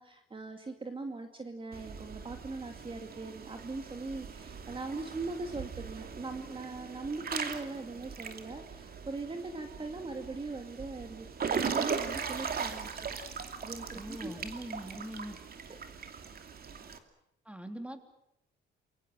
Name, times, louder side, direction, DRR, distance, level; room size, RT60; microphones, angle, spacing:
voice 1, 0.0-12.9 13.2-14.3 15.7-15.8, right 3 dB, 25° right, 6 dB, 2.4 m, -40 dB
Water / Splash splatter / Drip, 1.7-17.0, right 6 dB, 50° right, 2.7 m, -39 dB
voice 2, 13.9-15.4 17.4-18.0, right 1 dB, 5° right, 7 dB, 3.3 m, -42 dB
28.0 x 23.0 x 7.6 m, 0.77 s
cardioid pair, 90°, 20 cm